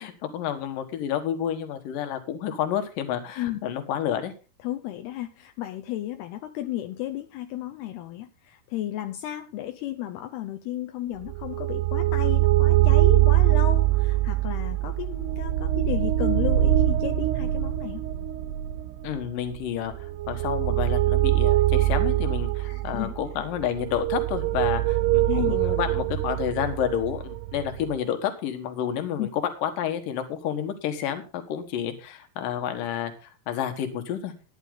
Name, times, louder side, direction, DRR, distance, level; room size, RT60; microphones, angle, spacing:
voice 1, 0.0-4.3 19.0-33.1 33.5-34.3, left 9 dB, 65° left, 7 dB, 3.0 m, -30 dB
voice 2, 4.6-18.0 22.7-23.1 25.3-25.8 29.2-29.3, left 13 dB, 80° left, 7 dB, 2.8 m, -33 dB
sound 1, 11.2-28.0, right 15 dB, 85° right, 2.7 m, -23 dB
14.5 x 10.0 x 3.9 m, 0.33 s
omnidirectional pair, 4.7 m